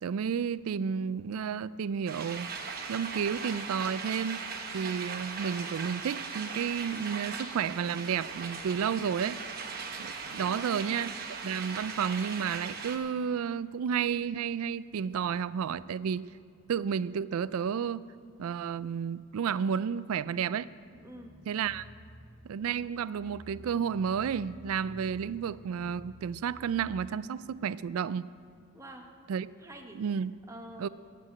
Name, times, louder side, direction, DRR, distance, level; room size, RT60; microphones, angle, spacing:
voice 1, 0.0-2.5 2.9-4.4 4.7-9.4 10.0-11.1 11.4-16.3 16.7-18.1 18.4-20.7 21.5-21.8 22.4-28.3 29.3-29.5 30.0-30.3 30.8-30.9, right 7 dB, 75° right, 17 dB, 0.3 m, -31 dB
sound 1, 2.1-13.0, right 5 dB, 40° right, 1.1 m, -39 dB
voice 2, 10.4-11.2 21.0-21.3 28.7-29.1 29.6-30.0 30.5-30.9, right 1 dB, 15° right, 2 dB, 1.0 m, -46 dB
sound 2, 20.9-27.1, left 1 dB, 55° left, 1.6 m, -52 dB
12.0 x 7.8 x 9.1 m, 2.1 s
head